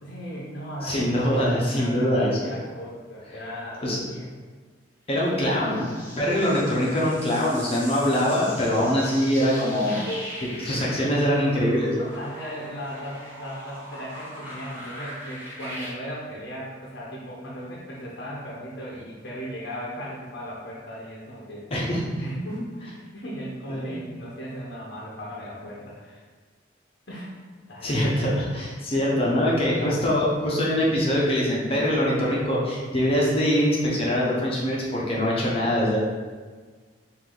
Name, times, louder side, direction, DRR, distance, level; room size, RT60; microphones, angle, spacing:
voice 1, 0.0-1.3 1.8-4.3 5.7-5.9 9.8-10.6 12.1-21.7 22.2-26.2 27.1-27.3 27.7-28.0 29.3-30.0, equal, 65° left, -5 dB, 0.8 m, -37 dB
voice 2, 0.8-2.5 3.8-4.0 5.1-5.8 6.2-10.0 10.6-12.1 21.7-22.0 23.7-24.0 27.8-36.0, equal, 30° left, -5 dB, 0.9 m, -23 dB
sound 1, 5.3-15.9, equal, 10° right, 1.4 m, -41 dB
5.0 x 2.6 x 3.8 m, 1.5 s
head